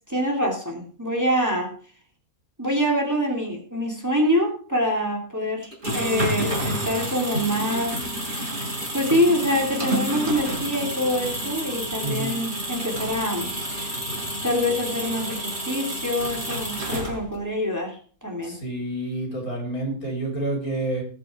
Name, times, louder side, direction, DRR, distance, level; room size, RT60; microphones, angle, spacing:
voice 1, 0.1-1.7 2.6-8.0 8.9-13.9 14.4-18.5, equal, 10° right, 0 dB, 2.8 m, -25 dB
sound 1, 5.6-17.5, equal, 35° right, 4.4 m, -29 dB
voice 2, 12.0-12.4 18.4-21.0, right 2 dB, 80° left, 0 dB, 4.7 m, -29 dB
18.5 x 6.2 x 4.8 m, 0.43 s
omnidirectional pair, 1.5 m